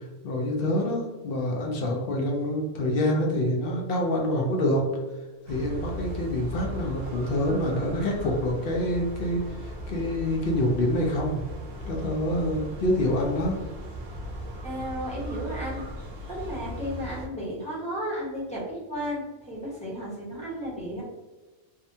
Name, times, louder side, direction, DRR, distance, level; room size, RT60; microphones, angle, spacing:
voice 1, 0.2-4.8 5.5-11.4 11.9-13.6, left 1 dB, 60° left, 0 dB, 0.7 m, -26 dB
sound 1, 5.5-17.3, equal, 60° right, 0.7 m, -37 dB
voice 2, 14.6-15.8 16.3-21.0, equal, 5° left, -8 dB, 0.7 m, -33 dB
2.7 x 2.1 x 2.6 m, 1.2 s
omnidirectional pair, 1.3 m